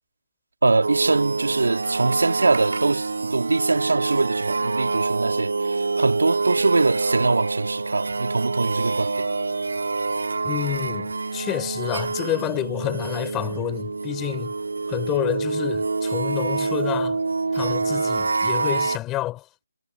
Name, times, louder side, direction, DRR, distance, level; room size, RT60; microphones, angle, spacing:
voice 1, 0.6-9.3, right 3 dB, 85° right, 3.5 m, -23 dB
sound 1, 0.8-19.0, right 3 dB, 70° right, 2.7 m, -26 dB
voice 2, 10.4-14.5 14.9-17.2 17.5-19.4, left 16 dB, 10° left, 5.0 m, -29 dB
hypercardioid pair, 175°, 0 cm